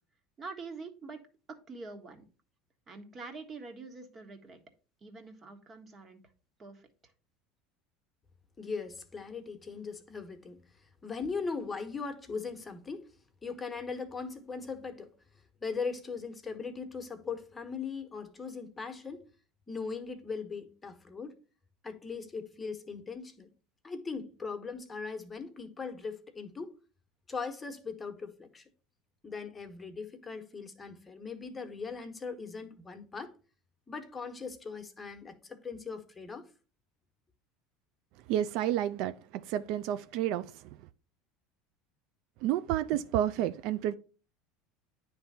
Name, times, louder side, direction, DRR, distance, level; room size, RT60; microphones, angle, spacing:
voice 1, 0.4-1.2 1.5-2.2 2.9-4.6 5.0-6.2 6.6-7.1, right 3 dB, 35° right, 1.5 m, -45 dB
voice 2, 8.6-13.1 13.4-15.1 15.6-19.3 19.7-21.3 21.8-23.5 23.8-26.7 27.3-28.7 29.2-33.3 33.9-36.5, left 5 dB, 20° left, 1.2 m, -39 dB
voice 3, 38.3-40.8 42.4-43.9, right 12 dB, 65° right, 0.3 m, -30 dB
9.7 x 3.4 x 4.2 m
hypercardioid pair, 90°, 0 cm